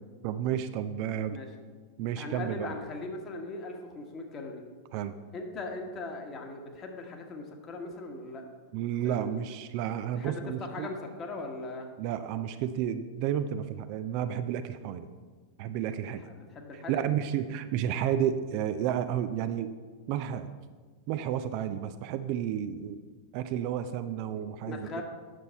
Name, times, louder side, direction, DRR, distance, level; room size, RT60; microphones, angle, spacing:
voice 1, 0.2-1.4 2.0-2.7 4.9-5.2 8.7-10.9 12.0-15.1 15.6-16.2 16.7-19.7 20.1-20.5 21.1-23.0 23.3-25.0, right 10 dB, 45° right, 10 dB, 0.4 m, -31 dB
voice 2, 2.2-4.6 5.3-8.4 9.0-9.4 10.1-11.9 16.1-16.2 16.5-17.0 24.4-25.0, left 2 dB, 30° left, 3 dB, 1.4 m, -39 dB
9.1 x 6.6 x 4.3 m, 1.4 s
figure-of-eight pair, 90°, 0 cm